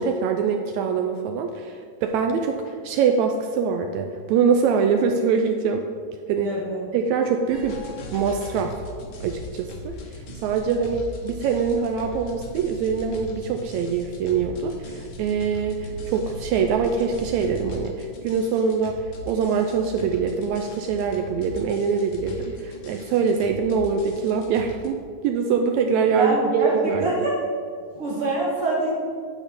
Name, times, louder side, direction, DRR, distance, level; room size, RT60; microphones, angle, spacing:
voice 1, 0.0-5.9 6.3-6.6 6.9-7.8 8.1-8.8 9.2-27.3, right 6 dB, 85° right, 4 dB, 1.6 m, -24 dB
voice 2, 6.4-6.8 26.2-27.4 27.9-28.9, right 2 dB, 60° right, -4 dB, 1.5 m, -25 dB
sound 1, 7.5-24.9, left 1 dB, 75° left, 1.3 m, -39 dB
10.0 x 3.6 x 6.9 m, 2.1 s
omnidirectional pair, 3.8 m